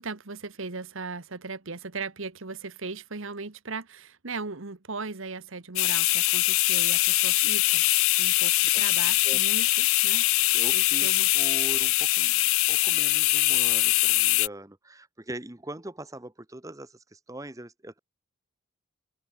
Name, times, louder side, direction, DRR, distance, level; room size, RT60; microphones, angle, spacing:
voice 1, 0.0-7.9 8.2-10.3 10.7-11.3, right 4 dB, 65° right, 1.3 m, -38 dB
sound 1, 5.8-14.5, left 19 dB, 70° left, 0.5 m, -23 dB
voice 2, 10.5-12.4 12.7-18.0, right 1 dB, 15° right, 1.0 m, -41 dB
open air
head